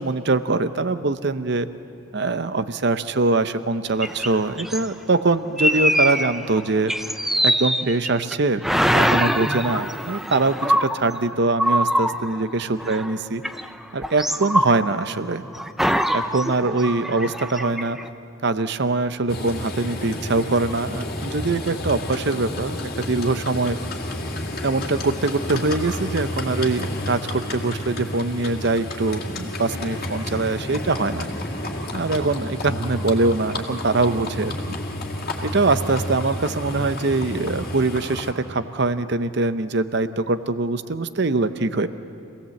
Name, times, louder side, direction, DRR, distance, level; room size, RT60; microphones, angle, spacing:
voice 1, 0.0-1.7 2.1-6.9 7.4-8.6 8.9-13.4 13.9-15.5 16.1-18.0 18.4-23.8 24.6-31.3 31.9-34.8 35.4-41.9, right 3 dB, 55° right, 12 dB, 0.7 m, -23 dB
sound 1, 4.0-4.9 5.6-6.6 6.9-8.4 8.6-13.1 13.4-15.2 15.5-18.1, equal, ahead, 0.4 m, -23 dB
Livestock farm animals working animals, 19.3-38.3, left 1 dB, 45° left, 2.2 m, -31 dB
26.0 x 17.5 x 7.8 m, 2.7 s
head